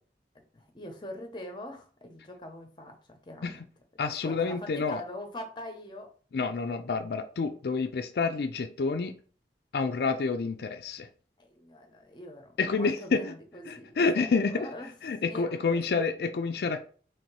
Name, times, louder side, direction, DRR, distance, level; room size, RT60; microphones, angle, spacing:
voice 1, 0.5-3.6 4.2-6.1 11.4-14.9 15.2-16.0, left 1 dB, 25° left, 0.7 m, -43 dB
voice 2, 4.0-5.0 6.3-9.2 9.7-11.1 12.6-13.3 13.7-14.7 15.0-16.8, left 4 dB, 65° left, 0.4 m, -28 dB
3.2 x 2.8 x 4.6 m
head